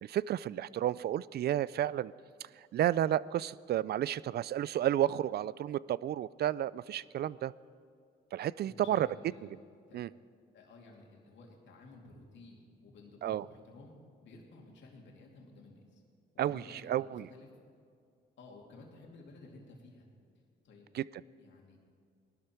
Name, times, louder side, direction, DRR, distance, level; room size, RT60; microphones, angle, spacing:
voice 1, 0.0-2.1 2.7-7.5 8.3-9.1 9.9-10.1 13.2-13.4 16.4-17.3 20.9-21.0, right 11 dB, 55° right, 20 dB, 0.4 m, -31 dB
voice 2, 8.7-9.5 9.9-10.1 10.5-16.0 16.4-17.5 18.4-20.1 20.6-20.9 21.4-21.8, left 2 dB, 65° left, -1 dB, 2.6 m, -54 dB
19.0 x 12.5 x 4.5 m, 2.3 s
cardioid pair, 90°, 20 cm